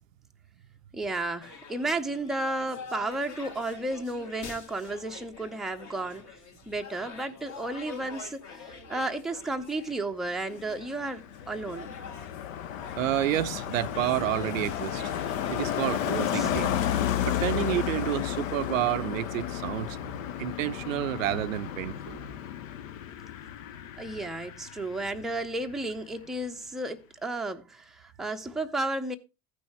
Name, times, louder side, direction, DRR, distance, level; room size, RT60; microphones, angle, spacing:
voice 1, 0.9-6.4 6.7-12.0 16.3-16.5 24.0-29.2, right 2 dB, ahead, 0.6 m, -33 dB
sound 1, 1.4-17.0, left 5 dB, 40° left, 1.8 m, -46 dB
Car passing by, 10.6-25.4 25.7-26.0, left 10 dB, 65° left, 0.7 m, -33 dB
voice 2, 13.0-15.1 15.5-16.7 17.3-20.0 20.4-22.2, right 13 dB, 65° right, 0.5 m, -29 dB
14.5 x 6.2 x 3.1 m
figure-of-eight pair, 70°, 42 cm